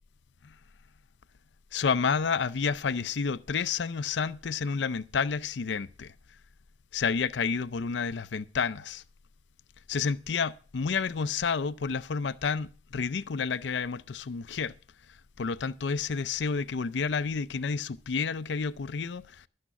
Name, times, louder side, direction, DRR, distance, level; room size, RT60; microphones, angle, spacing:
voice 1, 1.7-6.1 6.9-9.0 9.9-14.7 15.4-19.5, left 5 dB, 85° left, 0.5 m, -30 dB
12.5 x 8.6 x 5.8 m
head